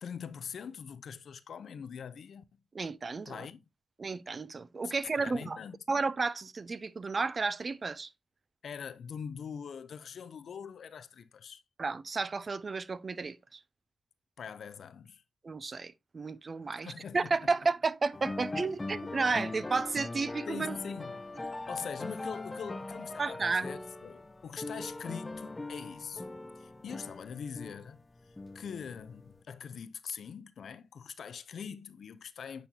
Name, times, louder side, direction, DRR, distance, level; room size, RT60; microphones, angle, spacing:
voice 1, 0.0-2.4 3.3-3.6 4.8-5.8 8.6-11.6 14.4-15.2 16.7-17.5 20.5-21.1 21.7-26.2 26.6-28.0 28.5-32.7, left 7 dB, 70° left, 0.5 m, -43 dB
voice 2, 2.7-3.5 4.0-5.6 5.9-8.1 11.8-13.6 15.4-20.8 21.4-21.5 23.2-23.7, right 4 dB, 45° right, 0.5 m, -32 dB
sound 1, 18.1-29.4, left 2 dB, 25° left, 0.6 m, -41 dB
9.0 x 4.2 x 2.7 m
supercardioid pair, 40°, 0 cm